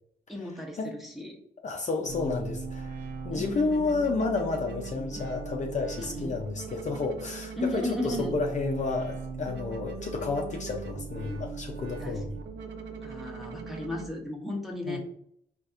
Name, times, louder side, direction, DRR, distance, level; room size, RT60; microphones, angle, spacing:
voice 1, 0.3-1.4 3.3-4.0 5.2-5.3 6.0-6.4 7.6-8.4 12.0-12.2 13.0-15.0, left 1 dB, ahead, 0 dB, 0.8 m, -35 dB
voice 2, 1.6-3.0 3.2-12.3 14.9-15.0, left 3 dB, 45° left, 2 dB, 0.5 m, -31 dB
sound 1, 2.1-14.1, right 4 dB, 90° right, 0.5 m, -39 dB
4.1 x 2.5 x 2.4 m, 0.67 s
cardioid pair, 80°, 18 cm